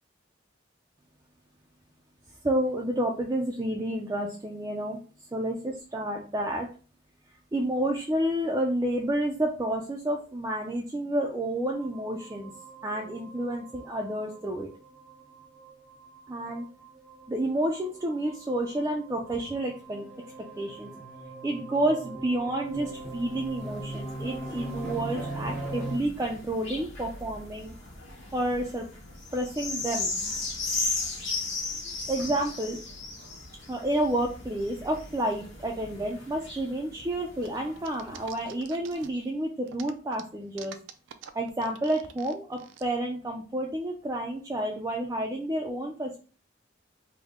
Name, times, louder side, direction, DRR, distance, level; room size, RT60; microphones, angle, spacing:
voice 1, 2.4-5.0 5.3-6.7 7.5-12.5 12.8-14.7 16.3-16.7 17.3-20.0 20.6-20.9 21.4-27.7 28.3-28.9 29.3-30.1 32.1-32.8 33.7-40.8 41.3-46.2, right 1 dB, 15° right, 0 dB, 0.3 m, -30 dB
sound 1, 11.7-26.0, right 2 dB, 10° left, 0.7 m, -41 dB
sound 2, 22.7-38.5 39.1-39.2, left 3 dB, 90° left, 1.5 m, -37 dB
sound 3, 37.4-39.3 39.7-42.8, right 8 dB, 90° right, 0.4 m, -46 dB
3.5 x 2.1 x 3.5 m, 0.38 s
head